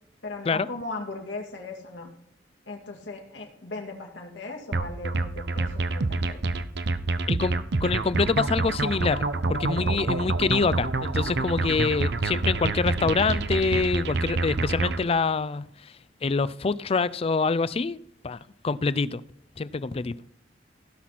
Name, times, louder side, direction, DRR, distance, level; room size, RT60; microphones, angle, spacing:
voice 1, 0.2-2.1 2.7-6.6 12.3-12.4 13.0-13.1, left 2 dB, 85° left, 1 dB, 2.5 m, -38 dB
sound 1, 4.7-15.0, right 3 dB, 65° right, 0.7 m, -27 dB
voice 2, 7.8-9.2 9.5-15.6 16.2-18.4 18.6-19.2 19.6-20.1, left 4 dB, 30° left, 18 dB, 0.4 m, -25 dB
17.0 x 5.9 x 4.2 m, 0.71 s
head